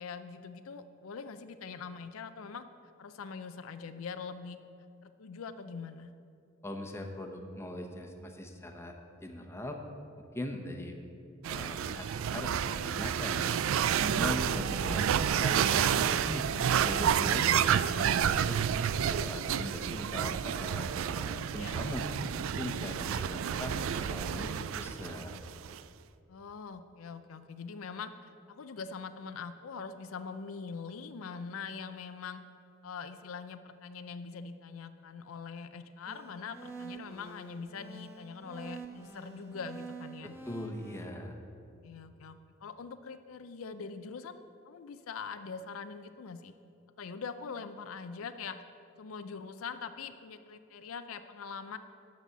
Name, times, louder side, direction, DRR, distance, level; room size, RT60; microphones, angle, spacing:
voice 1, 0.0-2.6 3.0-4.6 5.0-6.1 14.1-15.2 21.6-21.7 23.1-23.3 26.3-32.4 32.8-40.3 41.8-46.5 47.0-48.6 49.0-51.8, left 5 dB, 80° left, 10 dB, 0.5 m, -43 dB
voice 2, 6.6-8.9 9.2-9.8 10.3-11.0 11.5-13.6 14.0-16.5 16.8-18.6 19.0-22.0 22.5-25.4 40.5-41.4, left 1 dB, 15° left, 3 dB, 0.9 m, -40 dB
sound 1, 11.4-25.8, right 8 dB, 70° right, 0.3 m, -30 dB
sound 2, 36.1-41.0, right 3 dB, 10° right, 1.4 m, -47 dB
12.0 x 4.2 x 8.1 m, 2.5 s
head